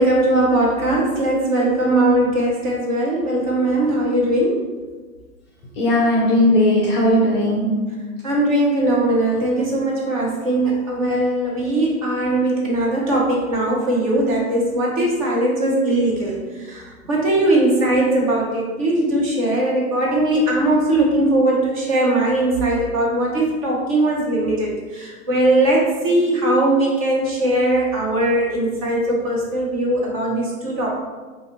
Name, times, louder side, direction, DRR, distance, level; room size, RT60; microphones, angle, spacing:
voice 1, 0.0-4.6 8.2-31.0, right 1 dB, 25° right, -3 dB, 0.6 m, -20 dB
voice 2, 5.8-7.9, left 1 dB, 20° left, -4 dB, 0.5 m, -17 dB
4.0 x 2.5 x 2.9 m, 1.4 s
figure-of-eight pair, 110°, 43 cm